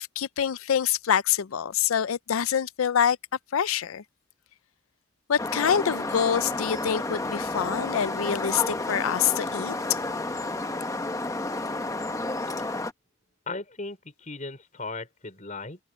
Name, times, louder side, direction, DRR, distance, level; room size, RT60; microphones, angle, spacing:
voice 1, 0.0-3.2 3.5-4.0 5.3-9.7, left 8 dB, 80° left, 0.5 m, -26 dB
sound 1, 5.4-12.9, left 2 dB, 15° left, 0.9 m, -31 dB
voice 2, 13.5-15.8, left 3 dB, 35° left, 4.9 m, -37 dB
head